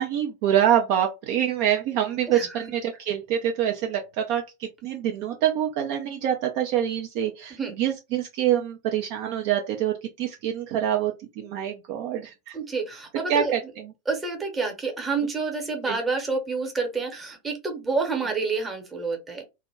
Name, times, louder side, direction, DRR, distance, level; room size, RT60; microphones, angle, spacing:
voice 1, 0.0-12.6 13.3-13.9 15.9-16.0, right 10 dB, 45° right, 0.4 m, -26 dB
voice 2, 2.3-2.6 7.5-7.7 12.5-13.5 14.1-19.4, right 4 dB, 15° right, 0.9 m, -28 dB
2.2 x 2.1 x 3.3 m
figure-of-eight pair, 90°, 0 cm